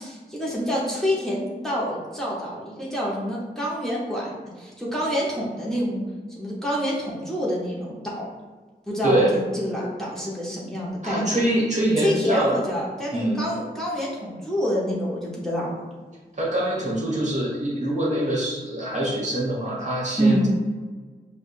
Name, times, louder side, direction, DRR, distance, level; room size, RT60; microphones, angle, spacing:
voice 1, 0.0-6.0 6.4-8.3 8.9-11.4 12.0-15.7 20.2-20.5, equal, 5° left, -6 dB, 1.0 m, -27 dB
voice 2, 9.0-9.3 11.0-12.5 13.1-13.5 16.4-20.5, right 1 dB, 45° right, -5 dB, 1.1 m, -24 dB
4.7 x 2.4 x 2.5 m, 1.4 s
cardioid pair, 50°, 17 cm